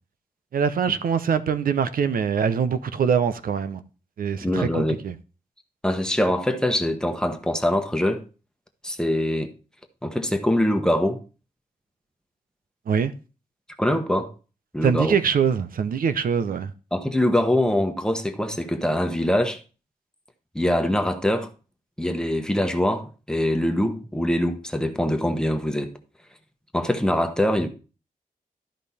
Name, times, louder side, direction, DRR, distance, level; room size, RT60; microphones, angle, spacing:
voice 1, 0.5-3.8 4.2-5.1 12.9-13.1 14.8-16.7, right 7 dB, 85° right, 0.7 m, -23 dB
voice 2, 4.4-5.0 5.8-8.2 8.8-9.5 10.0-11.2 13.8-14.3 14.7-15.1 16.9-19.6 20.5-21.5 22.0-25.9 26.7-27.7, left 1 dB, 5° left, 1.0 m, -23 dB
12.5 x 5.3 x 4.2 m
wide cardioid pair, 135°, 14 cm